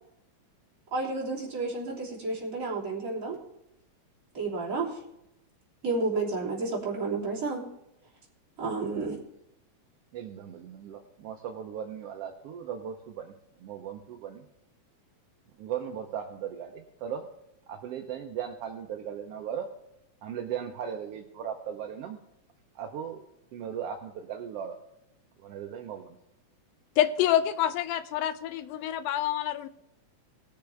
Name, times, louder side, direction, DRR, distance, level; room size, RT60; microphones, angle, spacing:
voice 1, 0.9-3.3 4.3-5.0 5.8-7.7 8.6-9.2, right 3 dB, 25° right, -6 dB, 3.3 m, -31 dB
voice 2, 10.1-13.3 13.6-14.4 15.6-17.3 17.7-19.7 20.2-22.2 22.7-23.2 23.5-24.8 25.4-26.2, right 8 dB, 75° right, 4 dB, 1.5 m, -37 dB
voice 3, 27.0-29.7, left 11 dB, 85° left, 11 dB, 1.4 m, -27 dB
20.0 x 6.9 x 3.3 m, 0.84 s
omnidirectional pair, 3.4 m